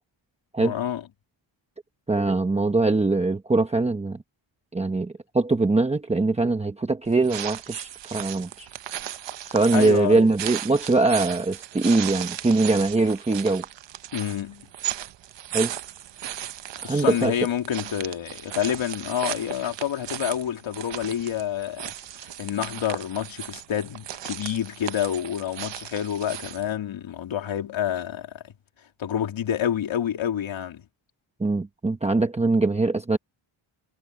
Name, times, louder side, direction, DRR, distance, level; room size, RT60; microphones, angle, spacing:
voice 1, 0.6-1.0 9.7-10.3 14.1-14.7 16.8-21.9 22.2-28.5 29.0-30.8, left 10 dB, 75° left, 3.0 m, -28 dB
voice 2, 2.1-4.2 4.7-8.7 9.5-13.7 15.5-15.7 16.8-17.3 31.4-33.2, right 3 dB, 15° right, 1.0 m, -22 dB
sound 1, 7.1-26.7, right 12 dB, 65° right, 0.9 m, -36 dB
wide cardioid pair, 175°, 47 cm